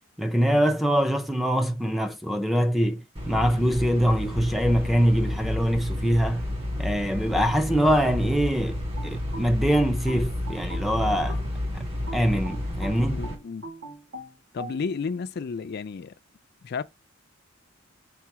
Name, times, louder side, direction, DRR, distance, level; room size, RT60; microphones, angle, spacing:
voice 1, 0.2-6.5 6.8-11.4 12.1-13.2, equal, ahead, 0.5 m, -24 dB
sound 1, 3.2-13.4, left 1 dB, 30° right, 1.9 m, -31 dB
sound 2, 9.0-11.5 12.1-14.8, right 2 dB, 75° right, 3.5 m, -41 dB
voice 2, 13.1-13.7 14.5-16.2 16.6-16.8, left 5 dB, 55° left, 0.4 m, -32 dB
5.6 x 3.8 x 6.0 m
head